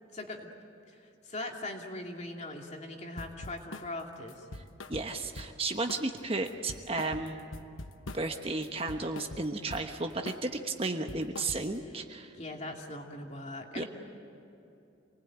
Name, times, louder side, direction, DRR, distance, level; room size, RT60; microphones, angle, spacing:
voice 1, 0.1-0.5 0.9-4.5 12.4-13.9, left 2 dB, 35° left, 1 dB, 2.6 m, -40 dB
sound 1, 3.2-3.9 4.3-5.6 5.9-6.2 6.5-8.4 8.6-9.9 10.3-10.5 10.8-11.9, left 2 dB, 90° left, 1.0 m, -44 dB
voice 2, 4.9-7.4 8.1-12.3 13.7-13.8, right 3 dB, 30° right, 5 dB, 1.1 m, -33 dB
27.5 x 20.0 x 9.0 m, 2.8 s
head